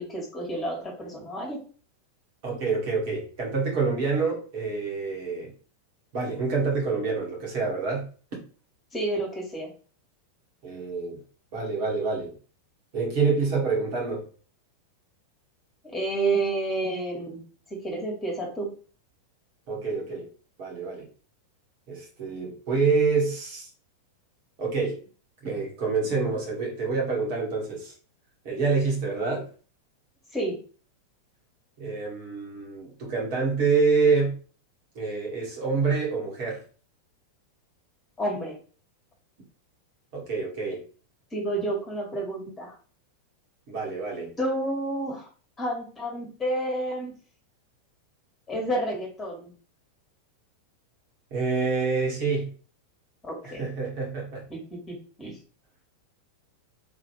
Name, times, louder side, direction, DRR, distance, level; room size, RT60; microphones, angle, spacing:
voice 1, 0.0-1.6 8.9-9.7 15.8-17.4 17.7-18.7 30.3-30.6 38.2-38.6 41.3-42.7 44.4-45.3 45.6-47.1 48.5-49.5 53.2-53.7 54.5-55.4, right 2 dB, 15° left, 0 dB, 1.9 m, -30 dB
voice 2, 2.4-5.5 6.1-8.0 10.6-11.2 11.5-12.3 12.9-14.2 19.7-20.3 20.6-21.1 21.9-23.7 24.6-25.0 25.4-27.9 28.4-29.5 31.8-34.4 34.9-36.6 40.1-40.8 43.7-44.3 51.3-52.5 53.4-54.4, right 4 dB, 45° right, -3 dB, 2.2 m, -27 dB
3.9 x 3.3 x 3.5 m, 0.39 s
figure-of-eight pair, 90°, 0 cm